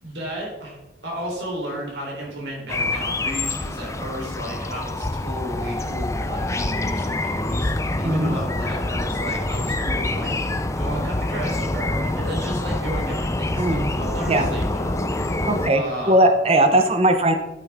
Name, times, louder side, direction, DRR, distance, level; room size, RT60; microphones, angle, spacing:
voice 1, 0.0-10.3 10.8-15.1 15.7-16.4, equal, 65° right, -2 dB, 3.7 m, -33 dB
sound 1, 2.7-15.7, left 2 dB, 15° left, 0.5 m, -26 dB
voice 2, 8.0-8.4 13.6-13.9 14.3-14.5 15.5-15.8 16.1-17.3, right 1 dB, 30° right, 7 dB, 0.9 m, -18 dB
12.0 x 7.9 x 3.6 m, 1.0 s
head